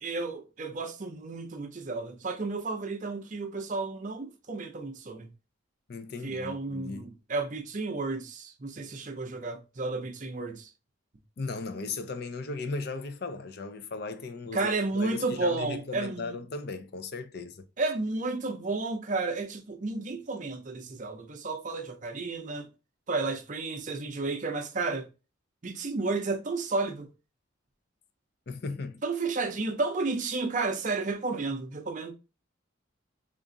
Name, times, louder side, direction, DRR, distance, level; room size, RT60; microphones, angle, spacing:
voice 1, 0.0-5.3 6.2-10.7 14.5-16.4 17.8-22.7 23.1-25.1 25.6-27.1 29.0-32.1, right 3 dB, 40° right, 0.5 m, -32 dB
voice 2, 5.9-7.1 11.4-17.6 28.5-29.0, left 3 dB, 50° left, 0.5 m, -37 dB
3.6 x 2.5 x 3.8 m
head